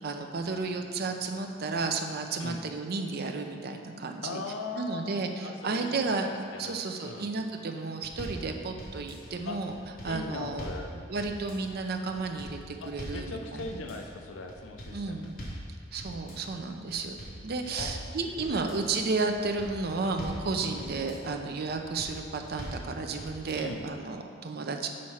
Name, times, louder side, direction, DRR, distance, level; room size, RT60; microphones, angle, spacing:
voice 1, 0.0-4.4 4.8-6.3 6.6-9.7 10.0-10.7 11.1-13.7 14.9-15.3 15.9-17.2 17.4-24.9, right 3 dB, 50° right, 5 dB, 0.5 m, -32 dB
voice 2, 4.2-6.1 6.5-7.3 9.5-9.6 10.0-10.9 12.8-15.3 17.8-17.9 18.2-18.8 20.6-20.9 23.6-23.8, left 3 dB, 70° left, 4 dB, 0.5 m, -40 dB
sound 1, 8.0-8.4 8.8-9.3 9.7-10.8 11.2-11.7 12.1-12.5 12.8-13.2 13.6-14.1 14.5-15.6 16.0-16.5 16.9-18.0 18.4-18.9 19.3-20.4 20.8-21.3 21.7-22.1 22.4-22.8 23.2-23.7, equal, 50° left, 1.6 m, -41 dB
6.4 x 4.2 x 5.6 m, 2.2 s
head